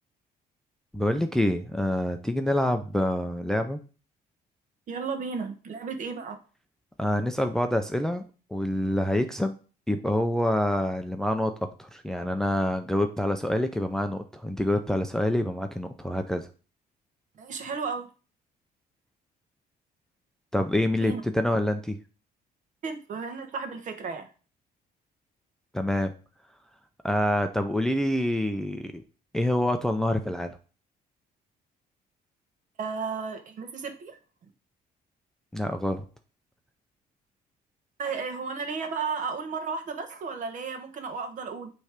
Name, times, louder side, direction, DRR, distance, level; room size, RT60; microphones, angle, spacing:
voice 1, 0.9-3.8 7.0-8.2 8.5-9.6 9.9-11.5 11.8-16.5 20.5-22.0 25.7-26.1 27.0-29.0 29.3-30.5 35.5-36.0, left 1 dB, 5° left, 6 dB, 0.5 m, -26 dB
voice 2, 4.9-6.4 17.4-18.1 21.0-21.2 22.8-24.3 32.8-34.2 38.0-41.7, right 5 dB, 50° right, 7 dB, 1.3 m, -33 dB
9.3 x 3.3 x 5.0 m, 0.37 s
cardioid pair, 135°, 16 cm